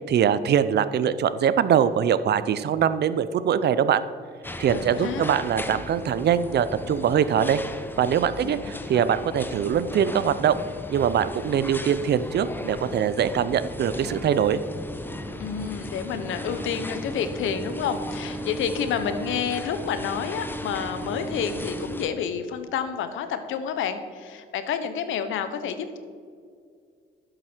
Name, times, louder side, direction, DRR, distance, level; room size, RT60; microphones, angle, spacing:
voice 1, 0.0-4.0 4.6-7.6 8.0-10.6 10.9-14.6, right 8 dB, 55° right, 14 dB, 0.6 m, -23 dB
sound 1, 4.4-22.1, left 1 dB, 10° left, 0.8 m, -36 dB
voice 2, 4.7-5.3 8.4-8.7 15.4-26.0, left 7 dB, 85° left, 10 dB, 1.0 m, -29 dB
11.5 x 7.7 x 4.5 m, 2.1 s
cardioid pair, 90°, 20 cm